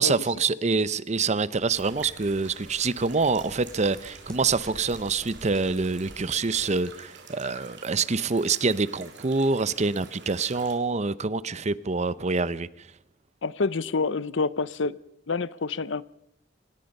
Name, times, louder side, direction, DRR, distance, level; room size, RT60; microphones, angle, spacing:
voice 1, 0.0-12.7, right 4 dB, 40° right, 0.7 m, -26 dB
sound 1, 1.6-6.8, equal, 5° left, 5.5 m, -49 dB
sound 2, 1.7-10.7, right 5 dB, 70° right, 3.8 m, -47 dB
voice 2, 13.4-15.0 15.3-16.0, left 4 dB, 75° left, 0.7 m, -27 dB
25.5 x 19.5 x 5.4 m
head